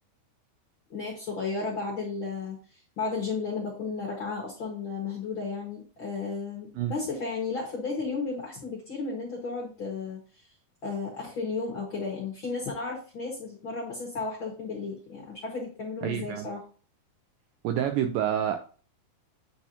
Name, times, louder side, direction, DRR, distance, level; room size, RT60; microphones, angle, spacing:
voice 1, 0.9-10.5 10.8-16.6, left 4 dB, 50° left, -2 dB, 1.5 m, -34 dB
voice 2, 16.0-16.5 17.6-18.6, right 10 dB, 85° right, 7 dB, 2.0 m, -27 dB
8.4 x 4.7 x 2.8 m, 0.38 s
omnidirectional pair, 4.4 m